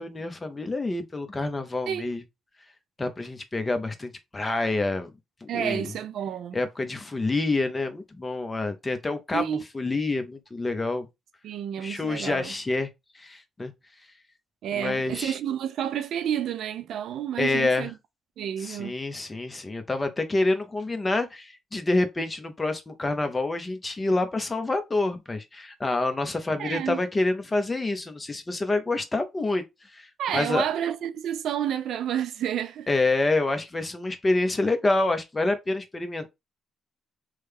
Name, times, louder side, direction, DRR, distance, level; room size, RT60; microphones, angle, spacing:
voice 1, 0.0-2.2 3.0-5.1 5.4-5.9 6.5-11.1 11.8-12.9 13.1-13.7 14.7-15.3 17.4-17.9 18.6-29.6 29.9-30.6 32.9-36.3, left 2 dB, 25° left, 0.7 m, -27 dB
voice 2, 5.5-6.6 9.3-9.6 11.4-12.5 14.6-17.9 18.4-18.9 26.6-27.0 30.2-32.9, right 9 dB, 75° right, 0.4 m, -30 dB
3.1 x 2.2 x 3.3 m
cardioid pair, 90°, 0 cm